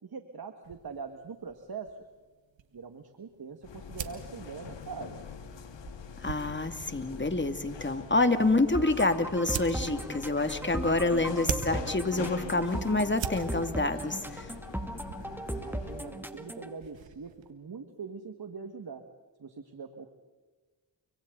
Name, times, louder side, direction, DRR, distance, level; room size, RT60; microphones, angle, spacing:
voice 1, 0.0-2.0 2.7-5.2 15.5-19.0 19.4-20.1, right 5 dB, 55° right, 7 dB, 2.0 m, -43 dB
sound 1, 0.6-17.5, right 8 dB, 85° right, 1.6 m, -44 dB
sound 2, 3.6-16.2, left 6 dB, 75° left, 2.2 m, -44 dB
voice 2, 6.2-14.5, left 2 dB, 25° left, 8 dB, 2.5 m, -27 dB
sound 3, 8.7-16.7, right 1 dB, 5° right, 2.4 m, -37 dB
30.0 x 25.5 x 4.0 m, 1.3 s
supercardioid pair, 45°, 44 cm